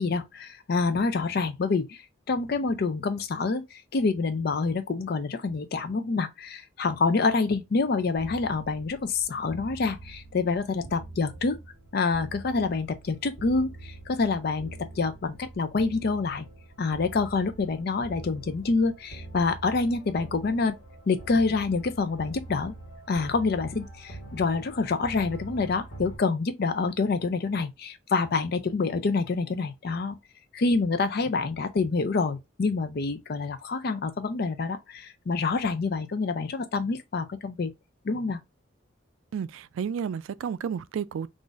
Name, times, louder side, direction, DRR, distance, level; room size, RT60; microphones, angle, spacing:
voice 1, 0.0-2.0 2.3-11.6 11.9-16.5 16.8-20.8 21.1-22.7 23.1-30.2 30.5-37.7 38.0-38.4, left 4 dB, 50° left, 0.4 m, -27 dB
sound 1, 8.2-26.2, right 2 dB, 85° left, 1.3 m, -44 dB
voice 2, 39.3-41.3, right 7 dB, 90° right, 0.3 m, -31 dB
3.8 x 2.5 x 2.4 m
head